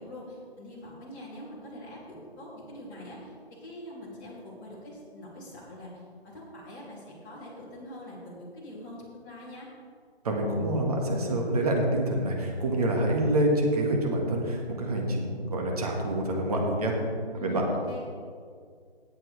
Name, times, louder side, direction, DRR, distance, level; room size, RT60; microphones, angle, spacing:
voice 1, 0.0-9.7 17.3-18.0, left 1 dB, 20° left, -7 dB, 3.0 m, -44 dB
voice 2, 10.2-17.0 17.4-17.6, right 1 dB, 35° right, 0 dB, 1.8 m, -27 dB
17.5 x 7.7 x 3.4 m, 2.1 s
figure-of-eight pair, 155°, 32 cm